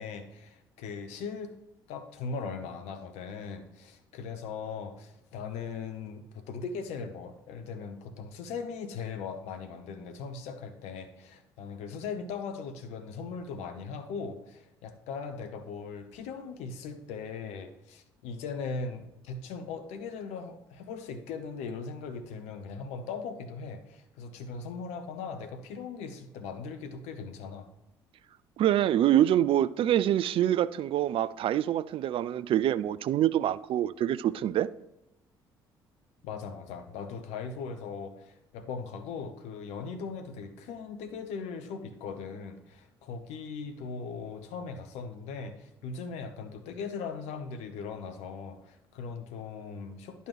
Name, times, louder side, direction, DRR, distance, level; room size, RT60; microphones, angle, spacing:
voice 1, 0.0-1.5 1.9-27.7 36.2-50.3, left 5 dB, 65° left, 0.9 m, -39 dB
voice 2, 28.6-34.7, right 11 dB, 45° right, 0.4 m, -25 dB
10.5 x 5.6 x 3.1 m
figure-of-eight pair, 50°, 12 cm